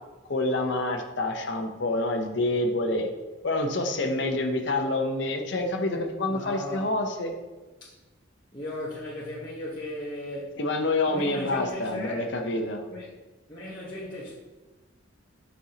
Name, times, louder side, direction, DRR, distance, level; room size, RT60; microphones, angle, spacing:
voice 1, 0.3-3.1 3.4-7.3 10.6-12.9, left 2 dB, 60° left, 3 dB, 0.8 m, -27 dB
voice 2, 5.8-6.9 7.8-7.9 8.5-10.6 11.1-12.3 12.9-13.1 13.5-14.3, left 1 dB, 20° left, -8 dB, 1.0 m, -37 dB
8.4 x 5.5 x 2.9 m, 1.2 s
head